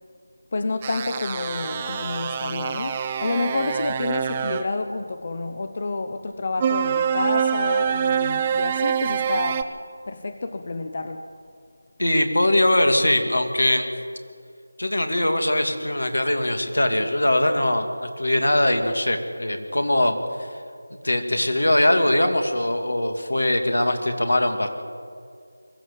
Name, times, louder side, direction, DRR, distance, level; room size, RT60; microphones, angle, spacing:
voice 1, 0.5-9.7 10.1-11.3, left 3 dB, 40° left, 8 dB, 0.9 m, -29 dB
sound 1, 0.8-4.7 6.6-9.6, right 8 dB, 20° right, 0.7 m, -25 dB
voice 2, 12.0-13.9 14.8-20.5 21.0-24.7, left 1 dB, 80° left, 6 dB, 2.6 m, -21 dB
22.5 x 13.5 x 8.3 m, 2.2 s
figure-of-eight pair, 165°, 0 cm